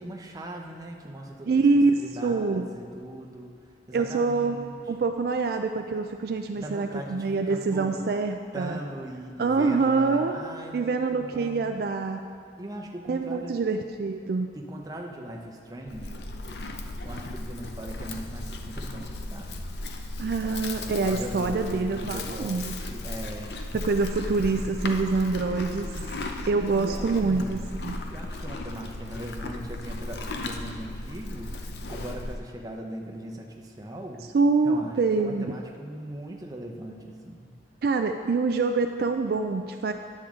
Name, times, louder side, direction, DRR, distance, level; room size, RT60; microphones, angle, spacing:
voice 1, 0.0-1.6 2.0-3.5 3.9-4.8 6.5-8.0 8.5-11.7 12.6-13.6 14.5-16.2 17.0-19.6 20.4-23.5 25.4-27.7 28.1-31.5 31.9-34.3 34.6-37.5, right 1 dB, 20° right, 0 dB, 0.7 m, -39 dB
voice 2, 1.5-2.6 3.9-4.6 4.9-8.8 9.4-10.4 10.7-12.3 13.1-14.5 20.2-22.7 23.7-25.9 26.5-27.9 34.3-35.5 37.8-39.9, right 4 dB, 60° right, 5 dB, 0.3 m, -25 dB
Livestock farm animals working animals, 15.9-32.4, left 2 dB, 70° left, 0.6 m, -36 dB
9.9 x 7.4 x 3.7 m, 2.1 s
head